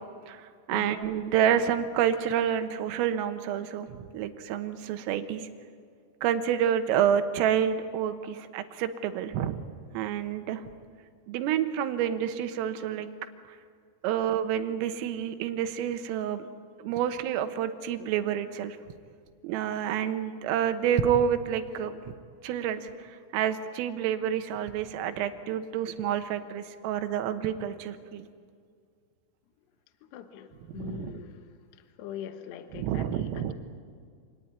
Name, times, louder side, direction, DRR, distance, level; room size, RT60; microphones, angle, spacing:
voice 1, 0.3-5.5 6.2-9.7 9.9-10.6 11.3-13.1 14.0-16.4 16.8-18.8 19.4-22.0 22.4-28.3 30.7-31.2 32.7-33.5, right 9 dB, 90° right, 9 dB, 3.8 m, -28 dB
voice 2, 30.0-31.5 32.0-33.3, left 9 dB, 70° left, 8 dB, 2.9 m, -42 dB
27.0 x 18.5 x 9.5 m, 2.1 s
omnidirectional pair, 5.8 m